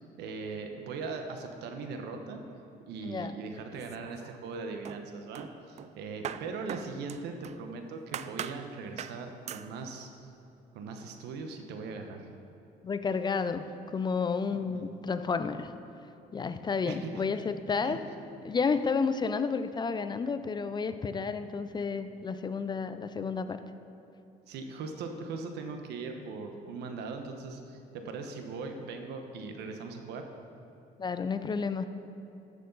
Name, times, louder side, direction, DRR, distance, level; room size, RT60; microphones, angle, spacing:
voice 1, 0.2-2.4 2.9-10.1 10.7-12.3 14.5-14.9 16.9-17.2 17.8-18.0 24.5-30.2, right 4 dB, 80° right, 5 dB, 1.1 m, -40 dB
voice 2, 3.0-3.3 12.8-13.6 13.9-15.7 16.3-18.0 18.4-23.6 31.0-31.9, left 5 dB, 25° left, 10 dB, 0.4 m, -31 dB
sound 1, 3.7-4.5 4.8-7.6 8.1-8.6 9.0-9.2 9.5-9.7, right 9 dB, 40° right, 0.4 m, -41 dB
14.5 x 6.6 x 4.0 m, 3.0 s
cardioid pair, 110°, 17 cm